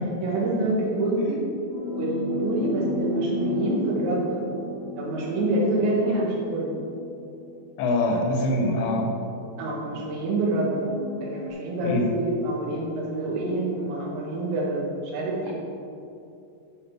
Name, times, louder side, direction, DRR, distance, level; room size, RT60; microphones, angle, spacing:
voice 1, 0.2-1.5 1.9-4.4 5.0-6.7 8.4-8.9 9.6-10.9 11.2-15.5, right 2 dB, 80° right, -4 dB, 4.0 m, -27 dB
sound 1, 1.7-7.6 8.5-8.6 10.4-11.5, left 1 dB, 55° left, 2.8 m, -32 dB
voice 2, 7.8-9.1 11.8-12.1, left 2 dB, 80° left, 2 dB, 3.4 m, -24 dB
10.5 x 8.5 x 4.8 m, 2.6 s
omnidirectional pair, 5.1 m